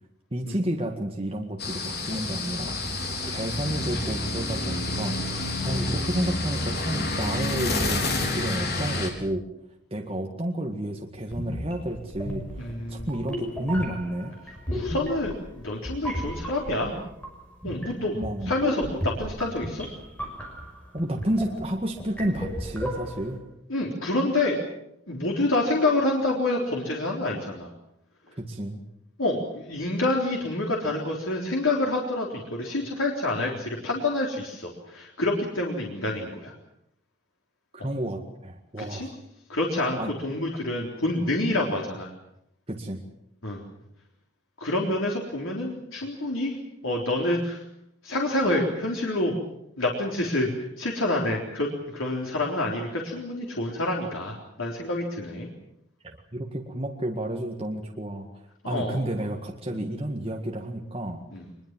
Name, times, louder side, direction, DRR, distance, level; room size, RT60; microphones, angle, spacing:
voice 1, 0.3-5.4 5.6-9.4 9.9-14.3 18.1-18.5 20.9-23.4 28.4-28.8 37.7-39.1 40.0-40.1 42.7-43.0 56.0-61.2, right 1 dB, 30° right, 1 dB, 1.9 m, -31 dB
sound 1, 1.6-9.1, left 2 dB, 50° left, 4.2 m, -29 dB
sound 2, 11.2-23.4, equal, 5° left, 6.0 m, -35 dB
voice 2, 12.6-13.1 14.7-17.0 17.6-18.1 18.5-19.9 23.7-24.7 25.1-27.7 29.2-36.5 38.9-39.1 39.5-42.1 43.4-43.6 44.6-46.6 46.8-47.6 48.0-49.3 49.8-50.5 50.8-55.5 58.6-59.0 59.7-59.8 61.3-61.4, left 2 dB, 90° left, -1 dB, 3.9 m, -27 dB
23.5 x 22.0 x 7.6 m, 0.78 s
head